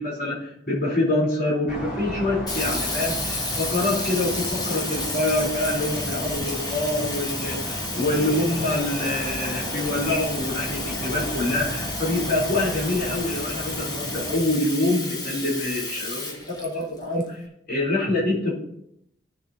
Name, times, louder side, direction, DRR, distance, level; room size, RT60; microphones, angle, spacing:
voice 1, 0.0-17.4 17.7-18.5, left 2 dB, 50° left, -6 dB, 3.7 m, -26 dB
sound 1, 1.7-14.4, equal, 5° right, 3.7 m, -34 dB
Sink (filling or washing), 2.5-17.2, left 2 dB, 20° left, 1.2 m, -32 dB
15.5 x 6.8 x 2.8 m, 0.76 s
head